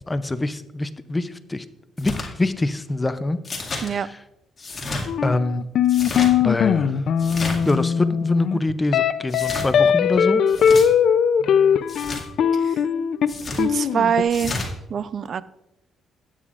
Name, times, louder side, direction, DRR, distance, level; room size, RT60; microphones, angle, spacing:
voice 1, 0.1-1.7 2.0-3.4 3.7-4.2 5.2-5.6 6.4-7.0 7.7-10.4, left 2 dB, 20° left, 12 dB, 0.5 m, -25 dB
sound 1, 2.0-2.3 3.4-3.9 4.6-5.1 5.8-6.3 7.2-7.7 9.3-9.7 10.5-10.9 11.9-12.2 13.3-13.6 14.3-14.7, left 2 dB, 35° left, 2.1 m, -30 dB
sound 2, 5.1-14.2, left 7 dB, 70° left, 0.4 m, -20 dB
voice 2, 13.6-15.4, right 7 dB, 55° right, 16 dB, 0.4 m, -24 dB
12.5 x 8.8 x 2.5 m, 0.89 s
cardioid pair, 90°, 0 cm